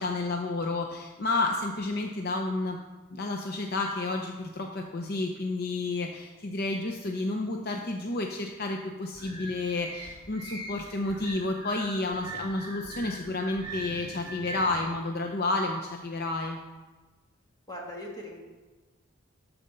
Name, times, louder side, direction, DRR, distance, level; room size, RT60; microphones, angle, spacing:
voice 1, 0.0-2.8 3.1-16.6, left 2 dB, 50° left, 3 dB, 0.7 m, -31 dB
sound 1, 9.1-14.8, right 1 dB, 25° right, 2.9 m, -41 dB
voice 2, 17.7-18.4, left 1 dB, 20° left, -3 dB, 2.1 m, -39 dB
12.0 x 4.3 x 6.6 m, 1.2 s
head